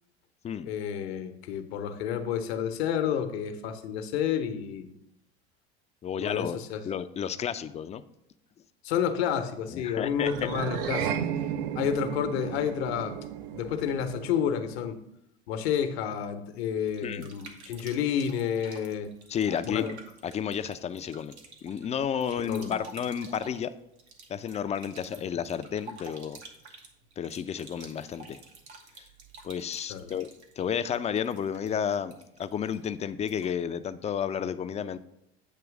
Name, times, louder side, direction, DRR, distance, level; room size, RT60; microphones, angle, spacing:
voice 1, 0.7-4.9 6.2-6.8 8.8-11.3 11.7-13.2 13.5-15.0 15.5-19.1 19.6-19.9 22.5-22.8 29.9-30.1, left 8 dB, 70° left, 9 dB, 0.9 m, -30 dB
voice 2, 6.0-8.0 9.7-10.5 17.0-17.3 19.3-19.8 20.2-21.3 21.6-23.7 24.3-26.4 27.2-28.4 29.4-30.3 30.6-35.0, left 8 dB, 20° left, 12 dB, 0.4 m, -31 dB
sound 1, 10.2-14.8, right 9 dB, 65° right, 0.7 m, -34 dB
sound 2, 16.9-33.7, right 3 dB, 85° right, 1.2 m, -51 dB
8.4 x 3.1 x 6.0 m, 0.82 s
hypercardioid pair, 80°, 32 cm